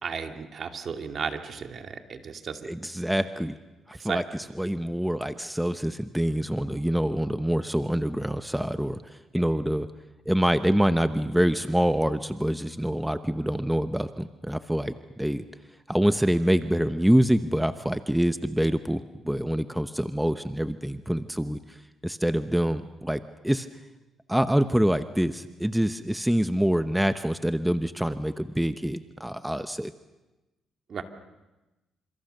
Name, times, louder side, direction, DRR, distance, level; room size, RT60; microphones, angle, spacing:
voice 1, 0.0-2.7 4.0-4.2 30.9-31.0, right 6 dB, 50° right, 5 dB, 2.4 m, -34 dB
voice 2, 2.6-3.6 3.9-4.2 4.6-9.9 10.3-15.4 15.9-23.7 24.3-29.9, equal, 5° right, 10 dB, 0.9 m, -26 dB
29.0 x 27.0 x 6.7 m, 1.1 s
cardioid pair, 90°, 0 cm